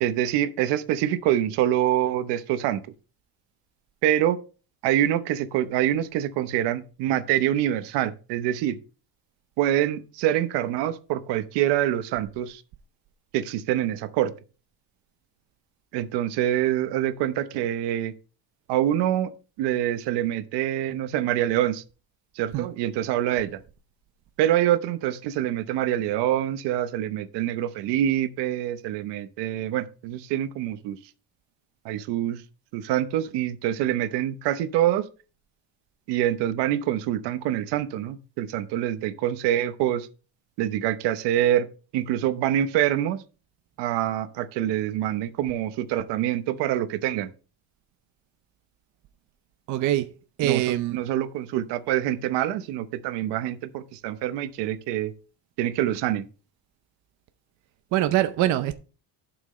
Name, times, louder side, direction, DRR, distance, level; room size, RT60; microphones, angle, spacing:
voice 1, 0.0-2.8 4.0-4.4 4.8-8.8 9.6-12.6 13.3-14.3 15.9-18.1 18.7-19.3 19.6-21.8 22.3-23.6 24.4-31.0 31.8-32.4 32.7-35.1 36.1-40.1 40.6-41.7 41.9-43.2 43.8-47.3 50.4-50.6 50.9-55.1 55.6-56.3, right 12 dB, 75° right, 1.0 m, -25 dB
voice 2, 49.7-50.1 50.4-51.0 57.9-58.7, right 14 dB, 45° right, 0.6 m, -23 dB
11.5 x 6.1 x 3.1 m
cardioid pair, 175°, 42 cm